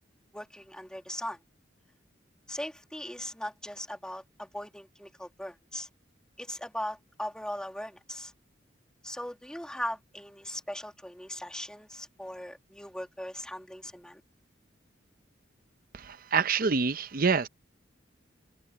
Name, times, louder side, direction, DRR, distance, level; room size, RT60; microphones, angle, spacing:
voice 1, 0.3-1.4 2.5-5.9 6.4-8.3 9.0-14.2, left 1 dB, 5° left, 1.9 m, -39 dB
voice 2, 15.9-17.5, right 5 dB, 50° right, 0.7 m, -26 dB
head